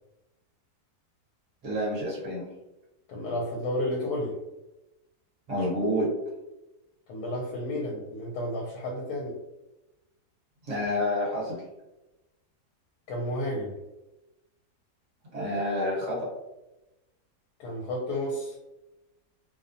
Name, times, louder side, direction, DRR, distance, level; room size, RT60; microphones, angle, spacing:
voice 1, 1.6-2.5 5.5-6.1 10.6-11.6 15.3-16.3, left 1 dB, 55° right, -5 dB, 1.1 m, -28 dB
voice 2, 3.1-4.3 7.1-9.4 13.1-13.7 17.6-18.6, left 1 dB, 75° left, -2 dB, 1.1 m, -31 dB
2.7 x 2.1 x 2.5 m, 0.99 s
omnidirectional pair, 1.7 m